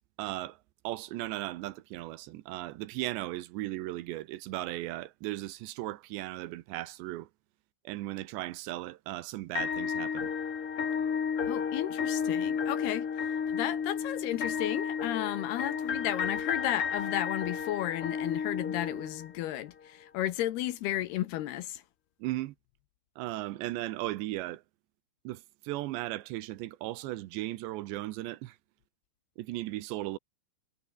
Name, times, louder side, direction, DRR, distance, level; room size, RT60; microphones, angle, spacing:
voice 1, 0.2-0.6 0.8-7.3 7.8-10.3 22.2-22.5 23.2-24.6 25.2-28.6 29.4-30.2, right 16 dB, 80° right, 3.1 m, -36 dB
sound 1, 9.5-19.6, left 7 dB, 40° left, 2.3 m, -32 dB
voice 2, 11.5-13.1 13.5-21.8, left 13 dB, 70° left, 2.8 m, -33 dB
omnidirectional pair, 5.2 m